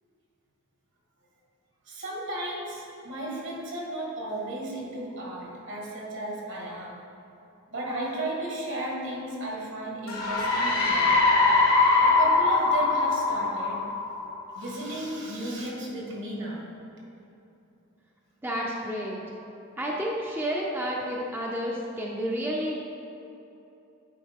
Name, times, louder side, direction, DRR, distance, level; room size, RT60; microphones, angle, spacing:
voice 1, 1.9-6.9 7.7-11.2 12.0-13.8 14.5-16.7, right 1 dB, 65° right, -3 dB, 1.6 m, -34 dB
sound 1, 10.1-14.6, left 3 dB, 85° left, 1.4 m, -22 dB
voice 2, 18.4-19.2 19.8-22.8, equal, 10° right, -3 dB, 0.5 m, -30 dB
9.3 x 4.5 x 3.5 m, 2.9 s
head